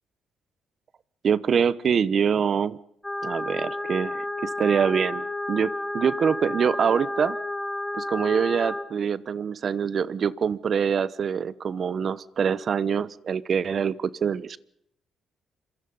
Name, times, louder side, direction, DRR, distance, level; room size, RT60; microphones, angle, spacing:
voice 1, 1.2-2.8 3.2-7.4 7.9-14.6, right 7 dB, 50° right, 18 dB, 1.0 m, -25 dB
sound 1, 3.0-8.8, left 1 dB, 10° left, 3.2 m, -31 dB
26.5 x 23.0 x 5.5 m, 0.73 s
cardioid pair, 90°, 0 cm